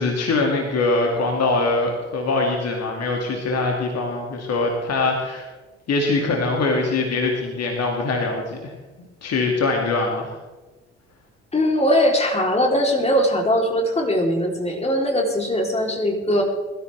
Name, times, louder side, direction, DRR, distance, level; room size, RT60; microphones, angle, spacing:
voice 1, 0.0-5.5 5.9-8.7 9.2-10.4, left 3 dB, 45° left, 1 dB, 2.4 m, -23 dB
voice 2, 11.5-16.4, equal, 20° left, 1 dB, 3.5 m, -20 dB
22.0 x 13.5 x 3.5 m, 1.2 s
figure-of-eight pair, 50°, 35 cm